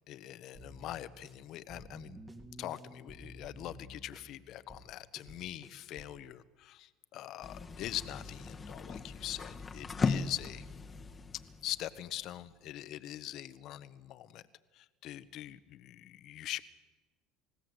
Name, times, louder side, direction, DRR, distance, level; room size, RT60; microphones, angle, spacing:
voice 1, 0.1-2.2 2.6-10.6 11.6-14.4 14.7-16.6, left 13 dB, 55° left, 14 dB, 1.2 m, -43 dB
sound 1, 0.5-6.2, equal, 20° right, 2.9 m, -52 dB
sound 2, 7.4-12.5, left 4 dB, 25° left, 1.6 m, -38 dB
28.0 x 16.5 x 8.0 m, 1.2 s
supercardioid pair, 95°, 0 cm